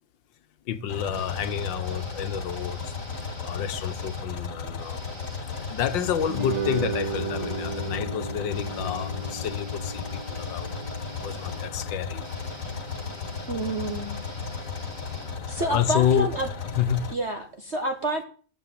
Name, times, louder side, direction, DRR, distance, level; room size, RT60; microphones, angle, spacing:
voice 1, 0.7-2.9 3.5-5.0 5.6-12.2 15.6-16.3 16.8-17.0, left 9 dB, 75° left, 1.8 m, -29 dB
sound 1, 0.9-17.1, left 5 dB, 45° left, 2.0 m, -35 dB
sound 2, 1.1-4.3 4.8-15.9, right 1 dB, 75° right, 5.0 m, -45 dB
sound 3, 6.3-12.8, right 4 dB, 60° right, 2.2 m, -35 dB
voice 2, 13.5-14.2 15.5-16.5 17.1-18.3, right 1 dB, 40° right, 1.5 m, -29 dB
17.0 x 8.1 x 7.6 m
omnidirectional pair, 2.0 m